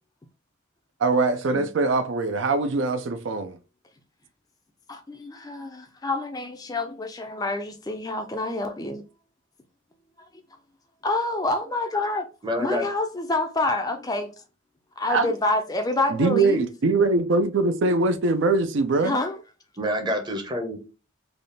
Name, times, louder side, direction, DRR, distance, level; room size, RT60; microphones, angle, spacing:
voice 1, 1.0-3.6 15.1-15.3 16.1-19.2, right 3 dB, 60° right, 0.4 m, -22 dB
voice 2, 4.9-9.0 10.2-10.3 11.0-12.3 12.6-14.3 15.0-16.7 19.0-19.4, left 2 dB, 20° left, 0.4 m, -27 dB
voice 3, 12.4-12.8 19.8-20.8, equal, 20° right, 0.7 m, -27 dB
3.4 x 2.3 x 3.9 m
head